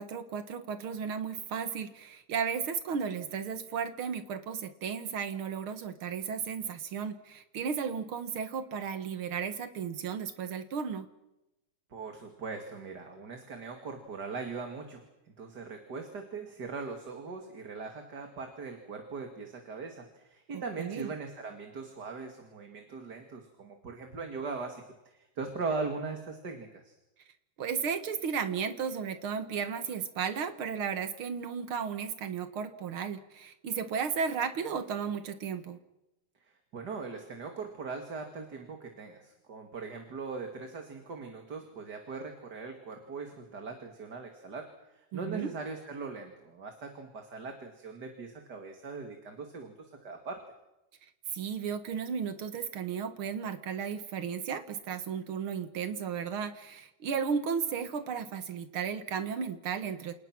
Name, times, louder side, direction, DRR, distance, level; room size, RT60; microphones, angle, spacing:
voice 1, 0.0-11.1 20.5-21.1 27.6-35.8 45.1-45.5 51.3-60.1, right 6 dB, 80° right, 10 dB, 2.4 m, -34 dB
voice 2, 11.9-15.0 15.4-27.0 36.4-44.7 44.9-50.4, right 4 dB, 50° right, 4 dB, 2.8 m, -40 dB
28.5 x 27.5 x 6.1 m, 0.97 s
omnidirectional pair, 2.3 m